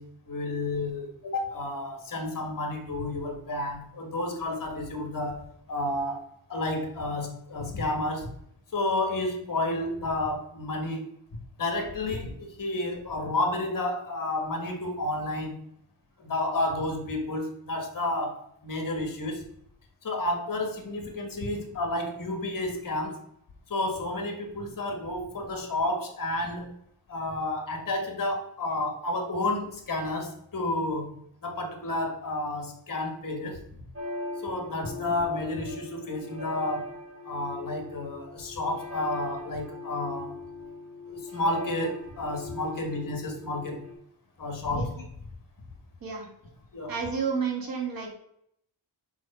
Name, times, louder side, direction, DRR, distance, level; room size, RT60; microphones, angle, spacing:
voice 1, 0.0-8.3 8.7-11.0 11.6-15.5 16.2-19.4 20.0-23.2 23.7-26.7 27.1-33.6 34.4-36.9 37.2-40.3 41.1-43.9 44.4-44.9 46.7-46.9, left 2 dB, 45° left, 4 dB, 1.5 m, -31 dB
sound 1, 33.9-43.9, left 2 dB, 30° right, 1.5 m, -39 dB
voice 2, 46.9-48.1, right 5 dB, 50° right, 2 dB, 1.7 m, -30 dB
4.8 x 4.6 x 5.3 m, 0.71 s
wide cardioid pair, 130°, 46 cm